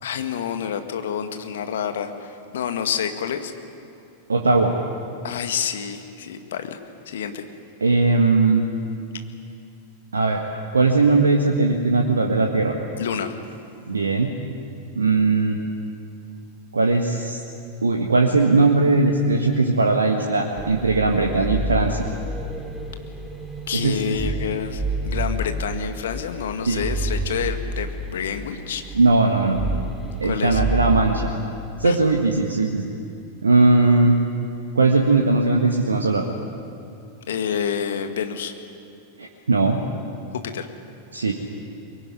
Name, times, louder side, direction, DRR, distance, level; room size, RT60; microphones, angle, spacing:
voice 1, 0.0-3.5 5.2-6.8 7.1-7.4 9.1-9.2 13.0-13.3 23.7-28.8 30.2-30.6 31.8-32.0 37.3-38.5 40.3-40.7, left 8 dB, 60° left, 7 dB, 1.9 m, -28 dB
voice 2, 4.3-4.7 7.8-8.6 10.1-10.4 10.7-12.7 13.9-14.3 14.9-15.6 16.7-17.4 17.8-22.0 23.7-24.1 26.7-26.8 28.9-29.6 30.2-31.3 31.8-32.9 33.4-34.2 34.7-36.2 39.2-39.8 41.1-41.3, right 3 dB, 75° right, 1 dB, 1.8 m, -19 dB
sound 1, 20.6-31.3, right 1 dB, ahead, 3.4 m, -29 dB
23.0 x 22.5 x 9.9 m, 2.5 s
figure-of-eight pair, 90°, 0 cm